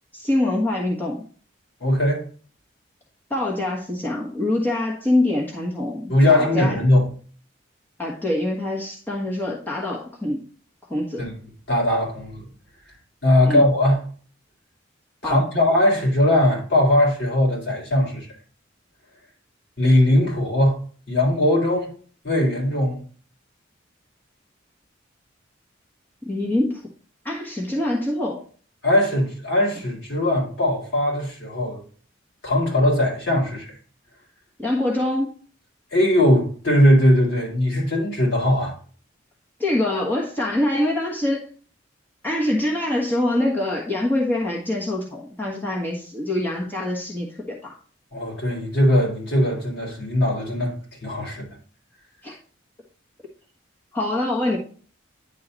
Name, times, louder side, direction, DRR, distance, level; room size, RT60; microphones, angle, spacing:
voice 1, 0.1-1.2 3.3-6.8 8.0-10.4 10.9-11.3 13.4-13.6 15.2-15.4 26.2-26.9 27.2-28.4 34.6-35.4 39.6-41.5 42.2-47.7 52.2-52.4 53.9-54.6, left 1 dB, 10° left, 1.3 m, -24 dB
voice 2, 1.8-2.2 6.1-7.1 11.2-11.3 11.7-12.4 13.2-14.0 15.2-18.3 19.8-20.8 21.1-21.9 22.2-23.0 28.8-31.8 32.4-33.7 35.9-38.7 48.1-50.7 51.0-51.5, left 1 dB, 60° left, 4.0 m, -19 dB
9.9 x 3.8 x 4.0 m
head